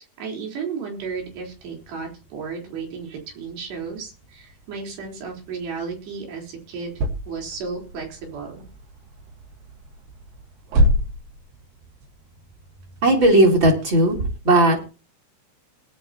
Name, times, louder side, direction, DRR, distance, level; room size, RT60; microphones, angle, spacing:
voice 1, 0.2-6.9 7.3-8.6, right 5 dB, 90° right, 1 dB, 6.2 m, -33 dB
sound 1, 1.0-14.2, equal, 65° right, 3.1 m, -31 dB
voice 2, 13.0-14.2 14.4-14.8, right 1 dB, 30° right, 0 dB, 3.7 m, -16 dB
20.5 x 11.0 x 2.9 m, 0.33 s
omnidirectional pair, 4.7 m